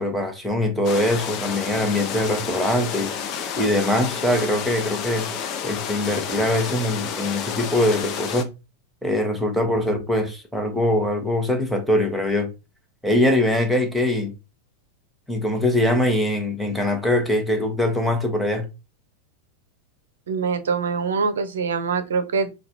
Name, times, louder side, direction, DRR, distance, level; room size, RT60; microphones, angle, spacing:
voice 1, 0.0-3.1 3.6-5.3 5.6-8.5 9.0-12.5 13.0-14.3 15.3-18.7, left 1 dB, ahead, 1.0 m, -22 dB
sound 1, 0.8-8.4, left 7 dB, 35° left, 0.7 m, -30 dB
voice 2, 20.3-22.5, right 5 dB, 65° right, 0.7 m, -24 dB
3.9 x 2.3 x 4.1 m
figure-of-eight pair, 90°, 0 cm